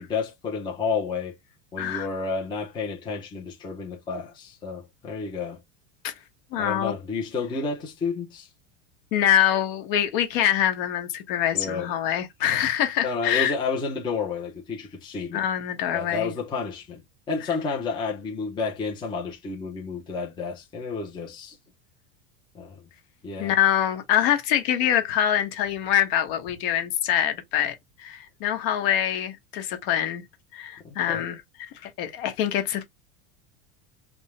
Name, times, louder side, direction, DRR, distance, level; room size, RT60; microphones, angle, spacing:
voice 1, 0.0-1.4 1.7-5.6 6.6-8.5 11.5-11.9 13.0-15.4 15.9-17.0 17.3-21.6 22.5-22.8 23.2-23.6 30.8-31.2, left 4 dB, 10° left, 0.7 m, -31 dB
voice 2, 6.5-6.9 9.1-13.5 15.3-16.3 23.4-30.2 30.5-31.4 31.8-32.8, left 10 dB, 50° left, 1.1 m, -24 dB
3.5 x 2.9 x 3.2 m
supercardioid pair, 175°, 37 cm